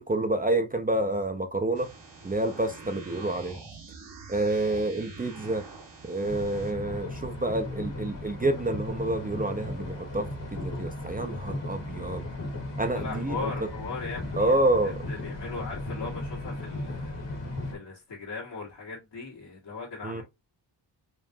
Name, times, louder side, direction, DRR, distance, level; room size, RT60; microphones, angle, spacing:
voice 1, 0.0-1.9 2.2-3.6 4.3-5.6 6.0-12.3 12.8-13.5 14.4-15.0 20.0-20.2, right 2 dB, 20° right, 0.5 m, -28 dB
sound 1, 1.8-6.7, right 3 dB, 80° right, 1.4 m, -45 dB
sound 2, 6.2-17.8, left 1 dB, 85° left, 1.6 m, -36 dB
voice 2, 12.9-14.6 15.1-20.2, left 4 dB, 65° left, 1.5 m, -39 dB
5.2 x 2.5 x 2.6 m
wide cardioid pair, 110°, 43 cm